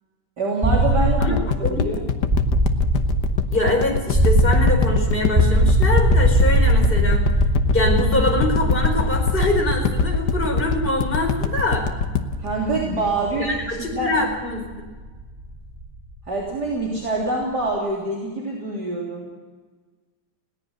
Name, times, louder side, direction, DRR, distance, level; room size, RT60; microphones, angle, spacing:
voice 1, 0.4-1.3 1.7-2.0 12.4-13.5 13.9-14.3 16.3-19.3, right 2 dB, 50° right, -3 dB, 3.9 m, -25 dB
sound 1, 0.6-16.5, right 1 dB, 20° right, 2.8 m, -22 dB
sound 2, 1.2-13.5 14.0-14.1, left 7 dB, 55° left, 1.5 m, -24 dB
voice 2, 1.6-1.9 3.5-7.3 7.7-11.9 13.3-14.7, left 2 dB, 25° left, 2 dB, 5.0 m, -24 dB
21.0 x 17.5 x 7.8 m, 1.4 s
omnidirectional pair, 2.3 m